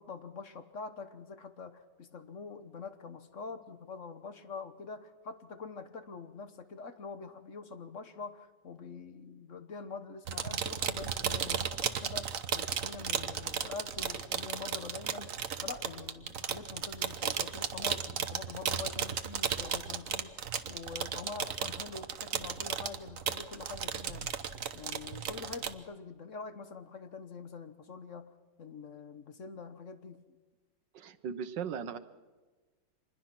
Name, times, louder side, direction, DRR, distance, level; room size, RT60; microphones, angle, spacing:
voice 1, 0.0-20.4 20.7-24.4 24.7-28.3 28.6-30.2, left 4 dB, 50° left, 9 dB, 1.3 m, -45 dB
sound 1, 10.3-25.7, right 7 dB, 55° right, 1.2 m, -35 dB
voice 2, 30.9-32.0, right 7 dB, 90° right, 11 dB, 1.7 m, -37 dB
26.0 x 21.0 x 6.1 m, 1.3 s
omnidirectional pair, 1.9 m